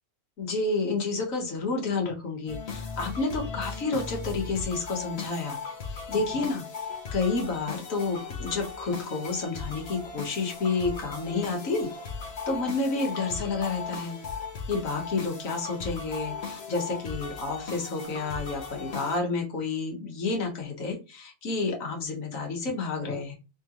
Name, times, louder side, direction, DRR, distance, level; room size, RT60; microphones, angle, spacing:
voice 1, 0.4-5.6 6.1-6.6 7.1-11.9 12.5-14.2 14.7-23.3, left 3 dB, 80° left, 1 dB, 1.6 m, -30 dB
sound 1, 2.5-19.2, left 5 dB, 55° left, 1.1 m, -37 dB
3.7 x 3.6 x 2.9 m, 0.29 s
omnidirectional pair, 1.4 m